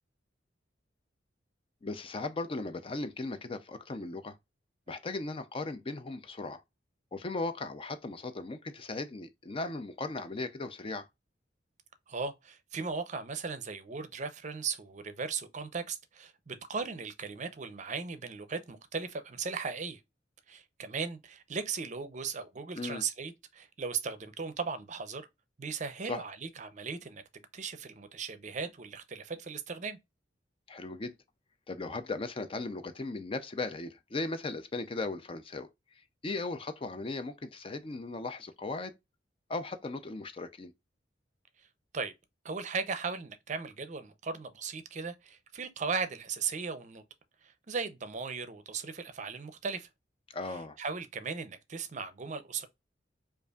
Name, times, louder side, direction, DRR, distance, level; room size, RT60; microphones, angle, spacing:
voice 1, 1.8-4.3 4.9-6.6 7.1-11.1 22.8-23.0 26.1-26.2 30.7-31.1 31.7-35.7 36.2-38.9 39.5-40.7 50.3-50.8, left 3 dB, 30° left, 0.4 m, -37 dB
voice 2, 12.1-20.0 20.5-25.3 25.6-27.2 27.5-30.0 41.9-42.1 42.4-47.0 47.4-49.9 50.5-52.7, right 5 dB, 40° right, 0.5 m, -37 dB
5.1 x 2.5 x 2.3 m
head